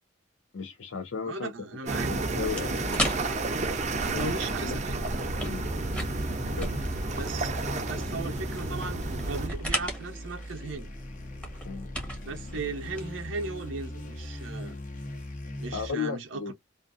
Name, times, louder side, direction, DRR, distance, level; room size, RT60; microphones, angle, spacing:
voice 1, 0.5-1.5 2.1-3.1 4.1-4.3 4.6-4.8 5.4-5.7 6.2-6.7 11.6-11.9 15.7-16.5, left 5 dB, 75° left, 0.5 m, -35 dB
voice 2, 1.3-2.5 4.1-5.0 7.1-7.5 7.8-9.0 9.2-10.9 12.2-14.8 15.6-16.5, right 4 dB, 70° right, 0.7 m, -37 dB
sound 1, 1.9-9.5, right 3 dB, 35° right, 0.6 m, -31 dB
sound 2, 2.2-15.9, left 1 dB, 40° left, 0.9 m, -40 dB
sound 3, 2.5-13.6, equal, 5° left, 0.9 m, -38 dB
2.5 x 2.4 x 2.4 m
head